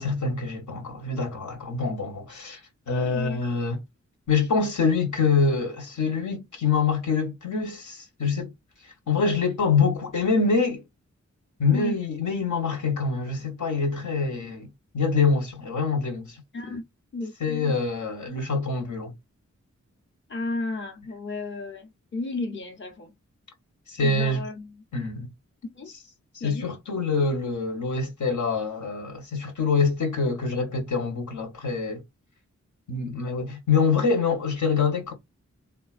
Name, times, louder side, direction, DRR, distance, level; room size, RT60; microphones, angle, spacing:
voice 1, 0.0-2.6 2.9-3.8 4.3-8.5 8.8-10.8 11.6-14.7 14.9-16.4 17.4-19.1 23.9-24.5 24.9-25.3 26.3-32.0 32.9-35.1, left 4 dB, 85° left, 1.2 m, -25 dB
voice 2, 3.0-3.4 11.7-12.0 16.5-16.8 17.1-17.7 20.3-23.1 24.0-24.7 25.7-25.9 26.4-26.7, left 2 dB, 40° left, 0.7 m, -33 dB
3.7 x 2.4 x 2.4 m
wide cardioid pair, 115°, 29 cm